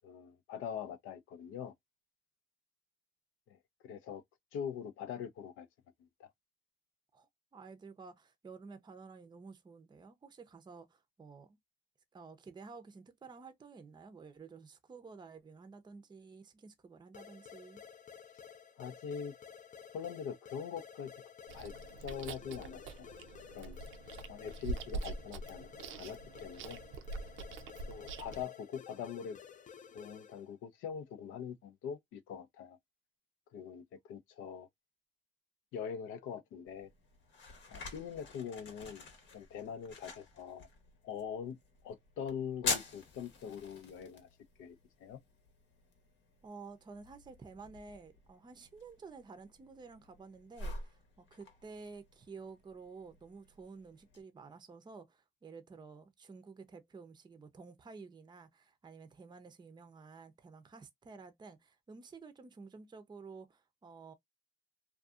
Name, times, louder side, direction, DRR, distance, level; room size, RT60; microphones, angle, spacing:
voice 1, 0.0-1.7 3.5-3.6 3.8-4.2 4.5-5.7 6.2-6.3 18.8-19.3 19.9-21.1 21.5-21.7 22.0-23.1 23.5-23.8 24.3-26.8 27.9-29.4 29.9-32.8 33.5-34.7 35.7-36.9 37.7-39.0 39.3-40.7 41.0-41.6 41.8-44.3 44.6-44.8 45.0-45.2, left 7 dB, 90° left, 0.5 m, -43 dB
voice 2, 7.5-11.6 12.1-17.8 46.4-64.1, right 4 dB, 20° right, 0.5 m, -52 dB
sound 1, 17.1-30.5, left 7 dB, 40° left, 0.4 m, -53 dB
Chewing mastication, 21.5-28.4, right 3 dB, 80° right, 0.5 m, -44 dB
sound 2, 36.7-54.2, left 4 dB, 70° left, 1.0 m, -46 dB
2.6 x 2.3 x 2.4 m
cardioid pair, 90°, 20 cm